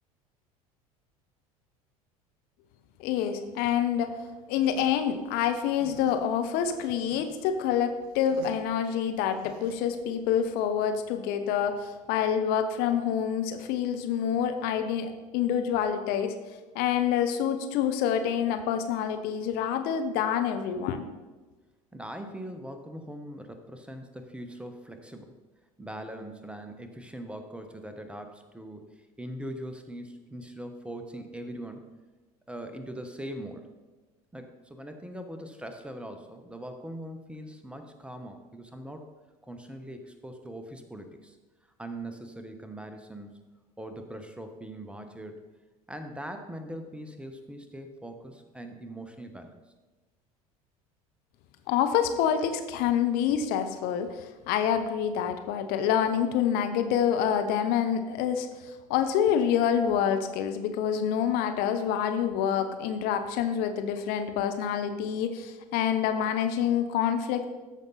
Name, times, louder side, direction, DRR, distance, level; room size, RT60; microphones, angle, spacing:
voice 1, 3.0-4.1 4.5-16.4 16.7-21.0 51.7-67.4, left 8 dB, 55° left, 8 dB, 0.8 m, -27 dB
sound 1, 4.6-10.6, right 5 dB, 65° right, 1.7 m, -50 dB
voice 2, 21.9-25.4 25.8-31.9 32.5-33.7 34.3-39.1 39.4-41.4 41.8-43.4 43.8-45.5 45.9-49.6, right 1 dB, 5° right, 6 dB, 1.1 m, -41 dB
13.5 x 5.4 x 4.0 m, 1.2 s
figure-of-eight pair, 70°, 19 cm